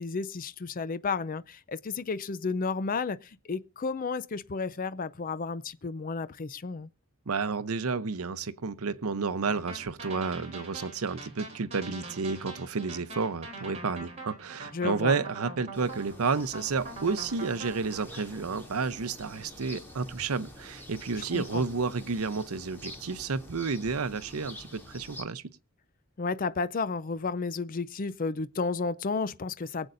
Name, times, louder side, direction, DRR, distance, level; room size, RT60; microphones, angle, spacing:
voice 1, 0.0-6.9 14.7-15.2 21.2-21.6 26.2-29.9, left 4 dB, 40° left, 0.5 m, -32 dB
voice 2, 7.3-25.4, right 4 dB, 90° right, 0.7 m, -31 dB
sound 1, 9.5-18.0, right 3 dB, 30° right, 3.3 m, -43 dB
sound 2, 15.7-25.2, left 1 dB, 10° left, 2.8 m, -47 dB
23.0 x 7.9 x 2.6 m
head